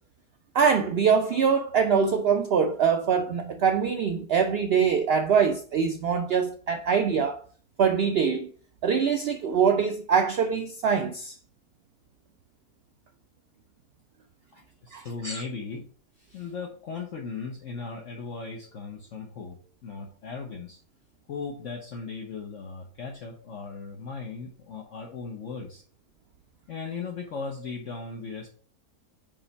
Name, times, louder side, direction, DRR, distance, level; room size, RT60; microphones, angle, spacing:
voice 1, 0.5-7.4 7.8-8.5 8.8-11.4 14.9-15.4, right 6 dB, 75° right, 0.5 m, -23 dB
voice 2, 14.5-15.9 16.2-20.8 21.3-25.8 26.7-28.5, left 4 dB, 55° left, 1.2 m, -37 dB
8.8 x 3.1 x 4.1 m
omnidirectional pair, 1.6 m